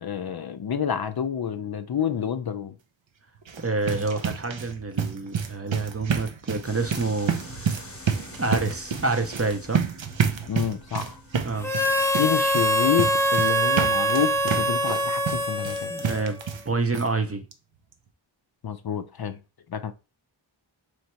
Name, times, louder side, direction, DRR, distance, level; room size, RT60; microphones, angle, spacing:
voice 1, 0.0-2.8 10.5-11.2 12.2-15.9 18.6-19.4 19.7-19.9, left 8 dB, 55° left, 0.5 m, -28 dB
sound 1, 3.4-16.7 16.9-17.1 17.5-17.6 17.9-18.0, right 6 dB, 70° right, 0.7 m, -29 dB
voice 2, 3.6-7.9 8.4-9.8 11.4-11.7 15.9-16.4 16.7-17.4, right 3 dB, 30° right, 0.7 m, -28 dB
sound 2, 6.6-13.6, left 2 dB, 30° left, 1.1 m, -46 dB
Harmonica, 11.6-16.5, equal, 5° left, 0.7 m, -24 dB
3.2 x 2.7 x 4.4 m
wide cardioid pair, 45°, 47 cm